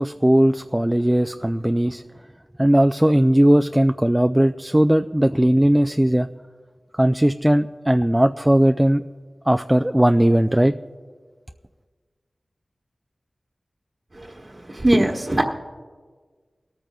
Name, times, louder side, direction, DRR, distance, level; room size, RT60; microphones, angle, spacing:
voice 1, 0.0-2.0 2.6-6.3 6.9-9.0 9.5-10.8, right 1 dB, 10° right, 8 dB, 0.3 m, -18 dB
voice 2, 14.7-15.4, right 1 dB, 35° right, 0 dB, 1.2 m, -18 dB
23.0 x 13.5 x 2.3 m, 1.5 s
wide cardioid pair, 60°, 0 cm